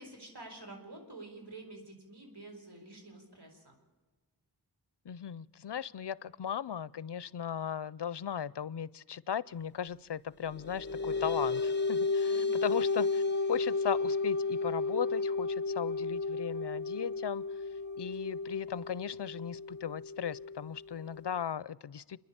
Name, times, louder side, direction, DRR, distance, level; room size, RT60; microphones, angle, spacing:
voice 1, 0.0-3.8 12.3-12.6, right 2 dB, 80° right, 2 dB, 5.0 m, -49 dB
voice 2, 5.0-11.6 11.9-13.2 13.5-17.6 18.0-22.2, left 8 dB, 80° left, 21 dB, 0.6 m, -37 dB
sound 1, 10.4-21.4, left 3 dB, 25° left, 1.1 m, -33 dB
28.0 x 10.5 x 8.7 m, 1.3 s
wide cardioid pair, 50°, 40 cm